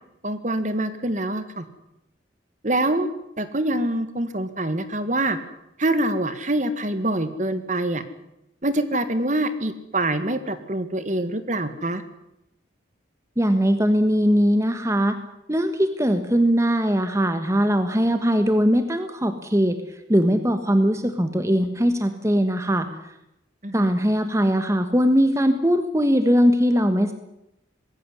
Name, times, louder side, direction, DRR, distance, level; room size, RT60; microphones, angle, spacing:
voice 1, 0.2-1.6 2.6-3.1 3.4-5.4 5.8-8.0 8.6-12.0 23.6-23.9, right 1 dB, 40° right, 11 dB, 1.8 m, -25 dB
voice 2, 13.4-15.1 15.5-19.8 20.1-22.9 23.7-27.1, equal, 15° right, 8 dB, 1.4 m, -20 dB
20.5 x 16.5 x 9.8 m, 0.85 s
head